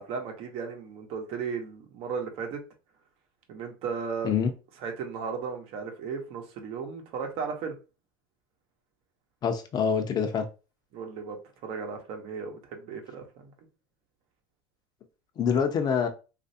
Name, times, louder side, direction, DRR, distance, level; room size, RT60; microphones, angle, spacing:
voice 1, 0.0-2.6 3.5-4.3 4.8-7.8 10.9-11.4 11.6-13.5, right 5 dB, 60° right, 0.9 m, -35 dB
voice 2, 9.4-10.4 15.4-16.1, left 7 dB, 35° left, 0.6 m, -25 dB
3.1 x 2.5 x 2.7 m
supercardioid pair, 105°, 11 cm